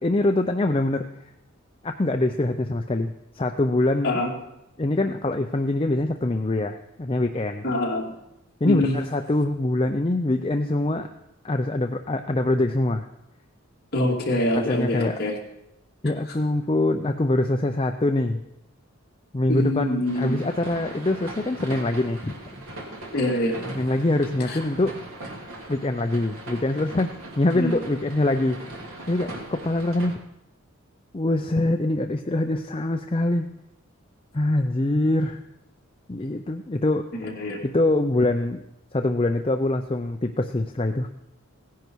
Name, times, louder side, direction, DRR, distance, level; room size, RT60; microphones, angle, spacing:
voice 1, 0.0-1.1 1.8-4.2 4.8-7.6 8.6-11.1 11.4-13.1 14.5-15.2 16.0-18.4 19.3-22.3 23.8-24.9 25.7-27.1 27.4-28.6 29.1-30.2 31.1-33.5 34.3-35.4 36.1-37.1 37.6-38.6 38.9-41.1, left 2 dB, 25° left, 5 dB, 0.5 m, -24 dB
voice 2, 7.6-8.1 8.6-9.0 13.9-15.3 19.5-20.4 23.1-23.7 24.5-24.6 27.5-27.8 37.2-37.6, left 1 dB, 45° left, -2 dB, 2.5 m, -25 dB
sound 1, 20.1-30.2, right 1 dB, 75° right, 2.9 m, -39 dB
17.0 x 10.5 x 4.6 m, 0.86 s
head